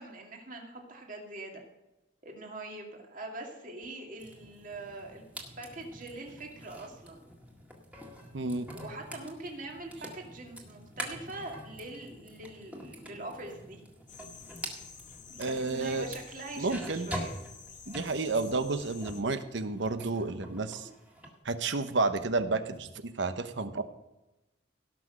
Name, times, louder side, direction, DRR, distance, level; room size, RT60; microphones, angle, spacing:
voice 1, 0.0-1.6 2.2-5.2 5.6-7.3 8.7-13.8 15.3-17.3, right 2 dB, 40° right, 1 dB, 2.3 m, -43 dB
sound 1, 4.2-19.3 19.7-21.3, equal, 5° right, 1.8 m, -45 dB
voice 2, 8.3-8.7 15.4-16.1 16.6-17.1 17.9-20.9 21.4-23.8, right 3 dB, 65° right, 10 dB, 0.9 m, -31 dB
sound 2, 14.1-19.2, left 6 dB, 40° left, 1.2 m, -50 dB
17.5 x 6.1 x 6.4 m, 0.98 s
head